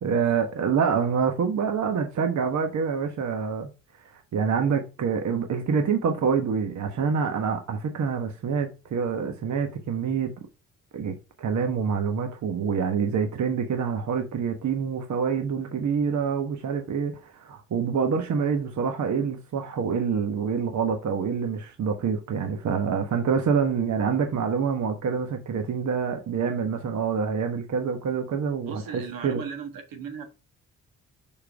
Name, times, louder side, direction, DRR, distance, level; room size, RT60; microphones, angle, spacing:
voice 1, 0.0-3.7 4.0-10.3 10.9-29.4, right 6 dB, 55° right, 1.2 m, -26 dB
voice 2, 28.7-30.3, right 6 dB, 75° right, 1.5 m, -37 dB
5.4 x 4.8 x 4.6 m
supercardioid pair, 55°, 35 cm